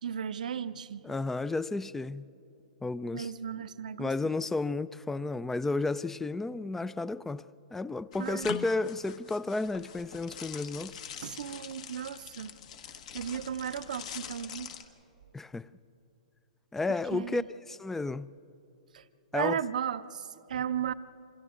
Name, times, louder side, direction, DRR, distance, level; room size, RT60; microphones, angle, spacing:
voice 1, 0.0-1.0 3.1-4.1 8.2-8.5 11.2-12.6 13.1-14.7 17.1-17.5 18.9-19.0 19.3-20.9, right 8 dB, 75° right, 0.7 m, -35 dB
voice 2, 1.0-2.2 2.8-3.3 4.0-7.5 7.7-11.0 15.3-15.7 16.7-17.4 17.7-18.3 19.3-19.6, left 3 dB, 5° left, 0.4 m, -32 dB
sound 1, 8.1-14.8, left 8 dB, 60° left, 1.5 m, -44 dB
28.0 x 26.5 x 3.8 m
hypercardioid pair, 130°, 4 cm